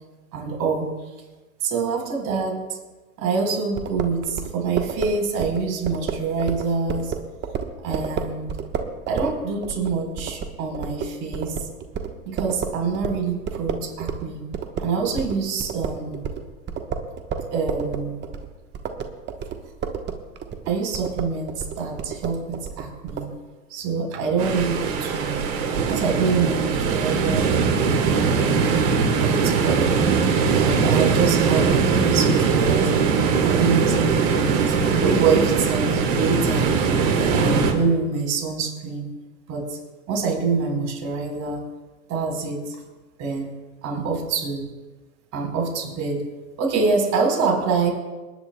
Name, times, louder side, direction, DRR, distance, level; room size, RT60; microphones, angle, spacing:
voice 1, 0.3-0.9 1.6-2.8 3.2-7.1 7.8-8.5 9.1-11.6 12.3-14.5 14.8-16.3 17.5-18.2 20.7-23.4 23.7-25.5 25.9-27.5 28.0-28.7 29.2-30.0 30.5-33.1 33.4-36.8 37.2-39.1 39.5-39.8 40.1-41.7 42.1-42.8 43.2-43.5 43.8-44.7 45.3-46.2 46.6-47.9, right 4 dB, 40° right, 1 dB, 4.0 m, -26 dB
sound 1, 3.8-14.3 14.5-23.3, right 7 dB, 25° right, 1.1 m, -31 dB
sound 2, 24.4-37.7, right 5 dB, 65° right, 3.1 m, -21 dB
27.5 x 10.5 x 2.2 m, 1.2 s
hypercardioid pair, 115°, 43 cm